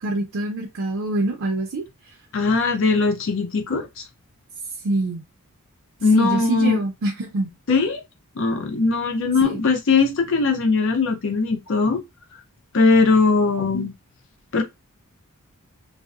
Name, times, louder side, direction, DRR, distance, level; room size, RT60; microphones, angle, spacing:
voice 1, 0.0-1.8 4.8-5.2 6.1-7.5 9.4-9.6, right 2 dB, 65° right, 0.5 m, -25 dB
voice 2, 2.3-4.0 6.0-6.8 7.7-8.0 8.4-12.0 12.7-13.9 14.5-14.6, left 4 dB, 60° left, 0.5 m, -20 dB
2.7 x 2.0 x 2.4 m
head